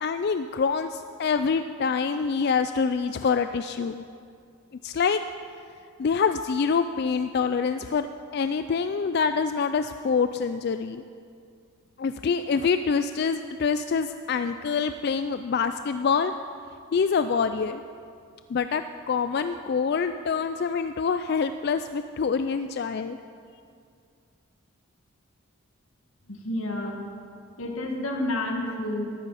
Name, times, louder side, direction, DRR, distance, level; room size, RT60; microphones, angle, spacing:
voice 1, 0.0-4.0 4.8-5.2 6.0-8.1 8.3-11.0 12.0-16.3 16.9-17.8 18.5-23.2, left 5 dB, 50° left, 9 dB, 0.3 m, -26 dB
voice 2, 26.4-27.0 27.6-29.1, left 1 dB, 75° left, 1 dB, 1.7 m, -29 dB
14.0 x 11.0 x 5.6 m, 2.3 s
head